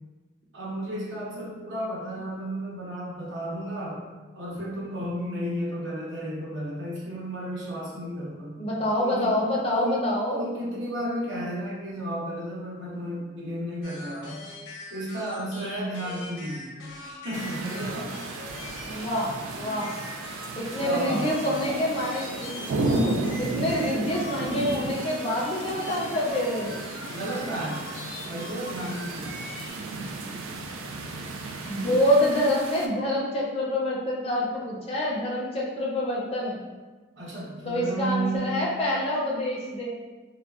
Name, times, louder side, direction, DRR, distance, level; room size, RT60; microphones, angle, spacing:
voice 1, 0.5-4.1 4.3-8.6 9.0-14.5 14.9-16.7 17.0-18.1 20.8-21.4 27.1-27.9 28.3-29.4 31.7-31.9 37.2-38.6, right 1 dB, 65° right, -6 dB, 0.9 m, -33 dB
voice 2, 8.6-10.4 18.9-19.9 20.6-26.7 31.7-36.6 37.6-39.9, left 1 dB, 30° left, -4 dB, 0.5 m, -27 dB
sound 1, 13.8-29.7, left 2 dB, 75° left, 0.8 m, -42 dB
sound 2, 17.3-32.9, right 2 dB, 90° right, 0.3 m, -34 dB
3.8 x 2.1 x 2.3 m, 1.3 s
head